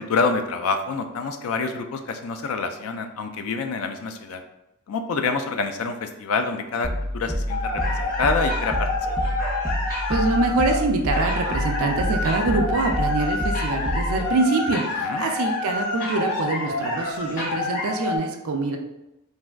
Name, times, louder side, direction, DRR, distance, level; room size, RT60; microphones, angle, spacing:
voice 1, 0.0-4.4 4.9-8.9 15.0-15.2, left 4 dB, 75° left, 6 dB, 0.4 m, -27 dB
sound 1, 6.8-14.3, equal, ahead, 0.3 m, -28 dB
sound 2, 7.5-18.2, left 2 dB, 40° left, 0.6 m, -28 dB
voice 2, 10.1-18.8, right 3 dB, 75° right, 3 dB, 0.4 m, -24 dB
3.3 x 2.5 x 2.2 m, 0.90 s
head